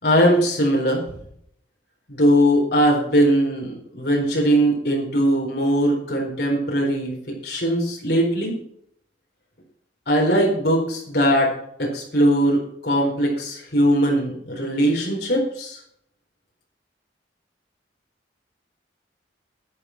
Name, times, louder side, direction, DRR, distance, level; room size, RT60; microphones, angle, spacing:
voice 1, 0.0-1.0 2.1-7.1 7.4-8.5 10.1-11.5 11.8-15.8, equal, 55° left, -2 dB, 4.2 m, -20 dB
11.5 x 11.5 x 5.9 m, 0.68 s
head